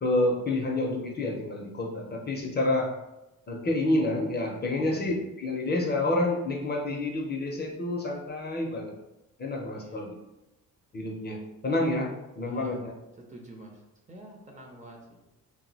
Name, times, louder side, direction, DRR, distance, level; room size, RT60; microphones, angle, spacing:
voice 1, 0.0-2.9 3.5-8.9 9.4-10.1 10.9-12.9, left 2 dB, 30° left, 0 dB, 0.5 m, -28 dB
voice 2, 4.8-5.2 9.7-10.1 12.4-12.8 13.3-13.8 14.1-15.2, right 1 dB, 20° right, 0 dB, 0.5 m, -46 dB
2.5 x 2.0 x 3.8 m, 0.94 s
cardioid pair, 110°, 33 cm